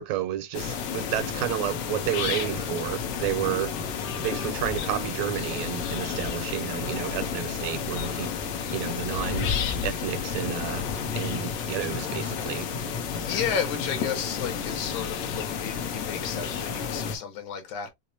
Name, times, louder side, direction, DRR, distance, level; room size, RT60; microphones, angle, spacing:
voice 1, 0.0-3.7 4.2-8.3 8.7-9.5 9.8-10.8 11.2-12.7, right 11 dB, 80° right, 1.7 m, -31 dB
sound 1, 0.5-17.2, left 6 dB, 70° left, 1.9 m, -31 dB
sound 2, 1.6-7.3, right 1 dB, 45° left, 1.4 m, -46 dB
voice 2, 13.3-17.9, left 8 dB, 85° left, 2.5 m, -33 dB
6.2 x 2.1 x 2.7 m
omnidirectional pair, 3.4 m